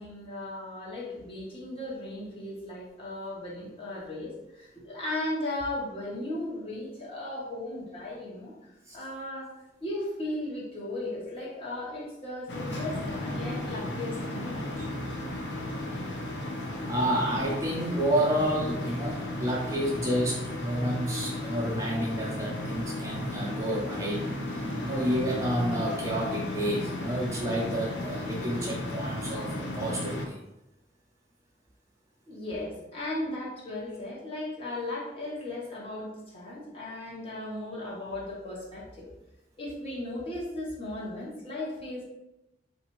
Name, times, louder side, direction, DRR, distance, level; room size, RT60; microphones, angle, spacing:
voice 1, 0.0-14.7 32.3-39.1 39.6-42.0, left 1 dB, 35° left, -5 dB, 1.1 m, -36 dB
sound 1, 12.5-30.3, left 1 dB, 80° left, 0.6 m, -34 dB
voice 2, 16.8-30.4, equal, 20° right, -4 dB, 0.5 m, -30 dB
4.1 x 2.5 x 3.0 m, 0.91 s
head